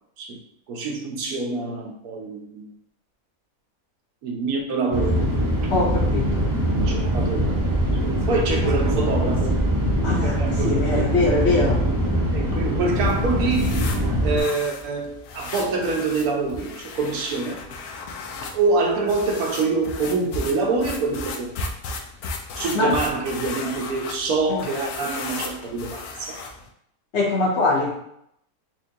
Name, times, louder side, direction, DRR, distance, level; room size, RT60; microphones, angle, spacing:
voice 1, 0.7-2.7 4.2-5.4 6.4-7.7 8.0-9.6 10.1-11.5 12.3-13.9 14.2-17.6 18.5-21.6 22.6-26.4, right 3 dB, 90° right, 2 dB, 1.2 m, -26 dB
sound 1, 4.9-14.4, equal, 30° right, 0.4 m, -22 dB
voice 2, 5.7-6.5 10.0-11.8 22.7-23.0 24.5-24.6 27.1-28.0, left 2 dB, 55° left, -3 dB, 1.1 m, -22 dB
sound 2, 12.9-26.7, left 3 dB, 80° left, 1.1 m, -35 dB
4.3 x 2.5 x 2.7 m, 0.72 s
omnidirectional pair, 1.5 m